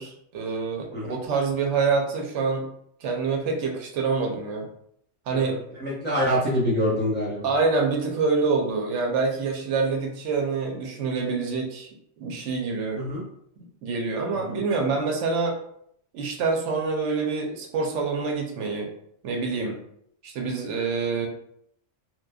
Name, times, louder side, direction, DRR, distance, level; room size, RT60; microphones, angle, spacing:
voice 1, 0.0-2.7 3.0-4.7 5.3-5.6 7.4-11.9 12.2-13.0 13.8-15.6 16.1-18.9 19.2-19.8 20.2-21.3, right 4 dB, 90° right, 1 dB, 0.9 m, -26 dB
voice 2, 5.8-7.5 12.9-13.2, equal, 10° left, -9 dB, 0.7 m, -25 dB
2.9 x 2.2 x 2.2 m, 0.70 s
omnidirectional pair, 1.2 m